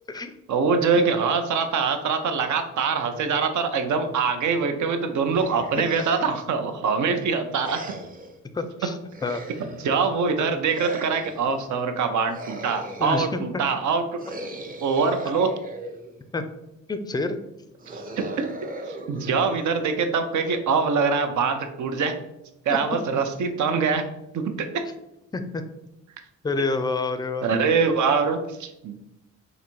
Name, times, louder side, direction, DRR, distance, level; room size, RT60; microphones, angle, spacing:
voice 1, 0.5-7.8 9.8-14.2 14.8-15.5 17.9-18.5 18.9-22.1 22.7-24.0 24.3-24.8 27.4-28.9, right 5 dB, 75° right, 7 dB, 0.6 m, -24 dB
sound 1, 5.3-6.4 7.6-8.4 9.1-10.0 10.7-11.6 12.3-13.4 14.2-16.2 17.8-20.2, right 1 dB, 30° right, 0.6 m, -38 dB
voice 2, 8.5-8.9 9.2-9.4 13.0-13.3 16.3-16.4 16.9-17.4 22.7-22.8 25.3-25.6 26.4-27.5, left 3 dB, 15° left, 10 dB, 0.3 m, -27 dB
4.1 x 2.6 x 4.4 m, 0.89 s
cardioid pair, 110°, 30 cm